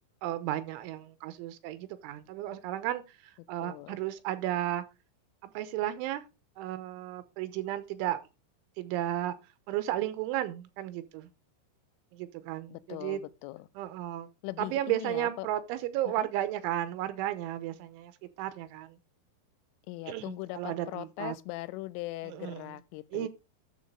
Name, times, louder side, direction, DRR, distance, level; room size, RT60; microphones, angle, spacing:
voice 1, 0.2-3.0 3.5-4.8 5.4-6.2 6.6-8.2 8.8-9.4 9.7-11.3 12.1-13.2 13.8-14.3 14.6-18.1 18.4-19.0 20.1-21.4 22.2-22.7 23.1-23.3, right 13 dB, 85° right, 3.3 m, -33 dB
voice 2, 3.6-4.0 12.7-13.7 14.4-15.5 16.1-16.3 19.9-23.3, left 18 dB, 90° left, 3.2 m, -40 dB
11.0 x 7.2 x 3.8 m
omnidirectional pair, 5.6 m